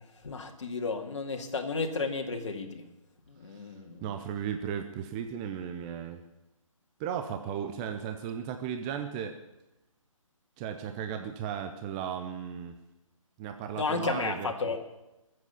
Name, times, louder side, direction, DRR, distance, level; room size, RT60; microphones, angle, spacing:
voice 1, 0.0-2.8 3.3-4.0 13.8-14.8, left 4 dB, 60° left, 3 dB, 2.0 m, -33 dB
voice 2, 4.0-6.2 7.0-9.4 10.6-12.8 13.4-14.7, right 8 dB, 10° right, 6 dB, 0.5 m, -35 dB
21.5 x 7.7 x 6.8 m, 0.97 s
figure-of-eight pair, 145°, 18 cm